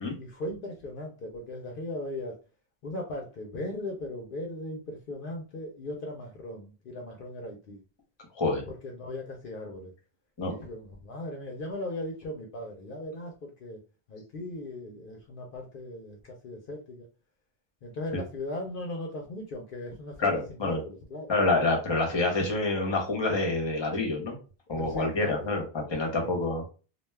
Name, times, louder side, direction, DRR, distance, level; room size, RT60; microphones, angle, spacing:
voice 1, 0.1-2.4 2.8-7.8 8.7-9.9 10.5-13.8 14.1-17.1 17.8-21.3 24.7-25.6 26.1-26.5, left 1 dB, 60° left, 1 dB, 0.7 m, -38 dB
voice 2, 20.2-20.8 21.3-24.3 24.7-26.6, left 2 dB, 30° left, 2 dB, 0.8 m, -27 dB
2.4 x 2.2 x 3.2 m, 0.34 s
omnidirectional pair, 1.1 m